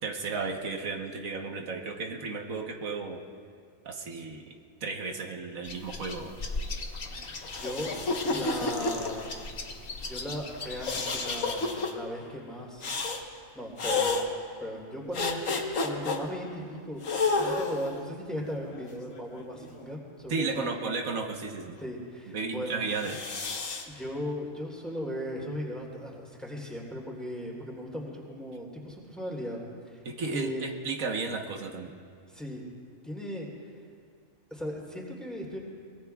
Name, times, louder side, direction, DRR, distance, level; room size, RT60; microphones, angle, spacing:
voice 1, 0.0-3.2 3.8-4.5 4.8-6.4 20.3-21.8 22.3-23.2 30.0-31.9, right 4 dB, 85° right, 2 dB, 1.6 m, -34 dB
sound 1, 5.6-11.4, left 3 dB, 45° left, 1.2 m, -39 dB
sound 2, 7.4-9.5 10.8-11.9 12.8-13.2 13.8-14.2 15.1-16.2 17.0-17.9 18.7-19.8 22.9-23.8, left 3 dB, 75° left, 1.6 m, -30 dB
voice 2, 7.6-7.9 8.3-9.3 10.1-12.9 13.5-14.1 14.6-15.5 15.8-17.0 17.4-20.8 21.8-22.8 23.9-29.6 29.8-30.0 30.3-30.6 32.3-32.6 33.0-33.5 34.5-35.6, equal, ahead, -3 dB, 3.4 m, -37 dB
24.5 x 22.5 x 2.4 m, 2.2 s
omnidirectional pair, 1.4 m